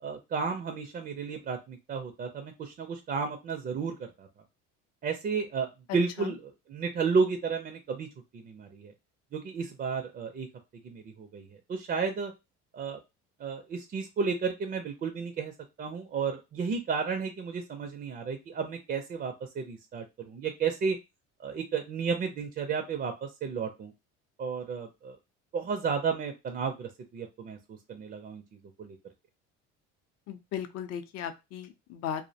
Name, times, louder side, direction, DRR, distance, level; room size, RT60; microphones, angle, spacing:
voice 1, 0.0-4.3 5.0-8.1 8.3-8.9 9.3-10.5 10.8-12.3 12.7-13.0 13.4-15.5 15.8-21.0 21.4-23.9 24.4-25.2 25.5-28.4 28.8-29.0, right 5 dB, 30° right, 5 dB, 0.4 m, -32 dB
voice 2, 30.3-32.3, left 9 dB, 60° left, 9 dB, 0.5 m, -37 dB
2.5 x 2.0 x 2.6 m, 0.24 s
cardioid pair, 105°, 30 cm